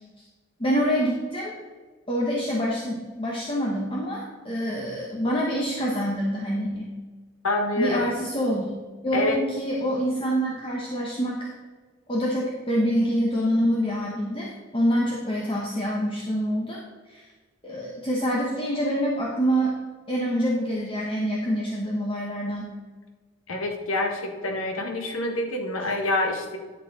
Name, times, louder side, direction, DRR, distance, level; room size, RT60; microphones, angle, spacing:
voice 1, 0.6-1.5 2.1-6.9 7.8-8.7 9.0-11.5 12.1-17.2 17.6-19.8 20.1-22.7, equal, 25° left, -3 dB, 1.1 m, -26 dB
voice 2, 7.4-8.1 9.1-9.4 23.5-26.6, left 2 dB, 90° left, 3 dB, 1.5 m, -26 dB
11.0 x 6.4 x 4.1 m, 1.4 s
head